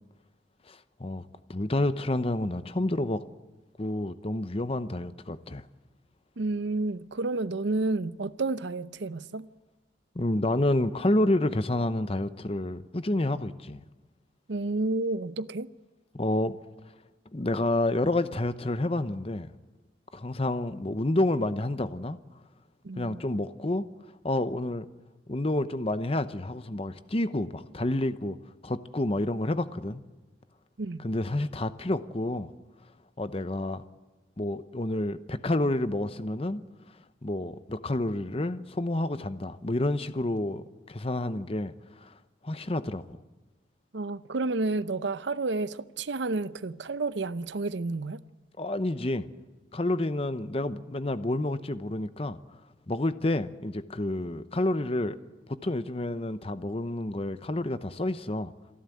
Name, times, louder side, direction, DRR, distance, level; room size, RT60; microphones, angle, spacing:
voice 1, 0.7-1.2 1.5-3.2 3.8-5.6 10.1-13.8 16.1-16.6 17.3-19.5 20.1-22.2 23.0-23.8 24.2-24.9 25.3-28.4 28.6-30.0 31.0-32.5 33.2-33.8 34.4-36.6 37.2-42.2 42.4-43.0 48.6-49.3 49.7-52.4 52.9-55.1 55.5-58.5, left 1 dB, 30° left, 0.8 m, -29 dB
voice 2, 6.4-9.5 14.5-15.7 22.8-23.2 30.8-31.1 43.9-48.2, right 3 dB, 70° right, 0.7 m, -30 dB
27.5 x 11.5 x 8.6 m
head